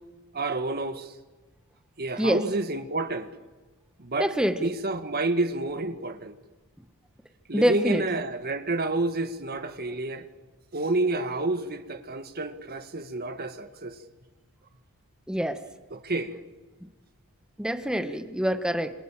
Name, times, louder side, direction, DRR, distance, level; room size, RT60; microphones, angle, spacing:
voice 1, 0.3-1.1 2.0-3.3 4.0-4.3 4.6-6.3 7.5-10.3 10.7-14.0 15.9-16.3 18.0-18.2, right 2 dB, 45° right, 1.9 m, -29 dB
voice 2, 4.2-4.7 7.5-8.0 15.3-15.6 17.6-18.9, equal, 5° right, 1.3 m, -25 dB
29.0 x 26.5 x 7.5 m
head